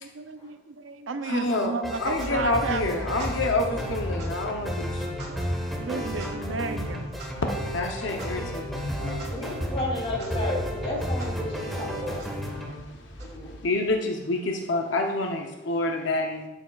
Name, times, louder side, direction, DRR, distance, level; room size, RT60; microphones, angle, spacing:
voice 1, 0.0-3.3 5.0-7.0 9.0-9.1, right 4 dB, 70° right, 9 dB, 0.5 m, -34 dB
voice 2, 1.2-5.5 7.7-9.3 12.6-16.5, left 2 dB, 65° left, 2 dB, 0.7 m, -28 dB
sound 1, 1.5-12.7, equal, ahead, 1.3 m, -33 dB
Clock, 2.0-14.0, equal, 55° right, 1.9 m, -40 dB
voice 3, 9.3-12.3 13.2-13.6, left 1 dB, 30° left, -4 dB, 3.0 m, -33 dB
12.0 x 7.1 x 2.3 m, 1.1 s
head